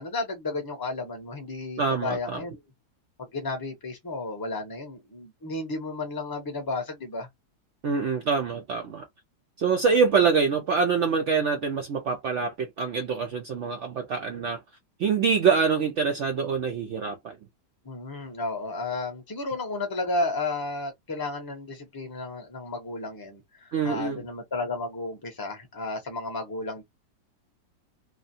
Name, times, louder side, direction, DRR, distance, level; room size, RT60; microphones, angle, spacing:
voice 1, 0.0-2.6 3.2-7.3 17.8-26.8, left 2 dB, 25° left, 0.5 m, -33 dB
voice 2, 1.8-2.4 7.8-9.1 9.6-14.6 15.0-17.3 23.7-24.2, right 5 dB, 80° right, 0.6 m, -25 dB
2.9 x 2.2 x 2.6 m
omnidirectional pair, 1.9 m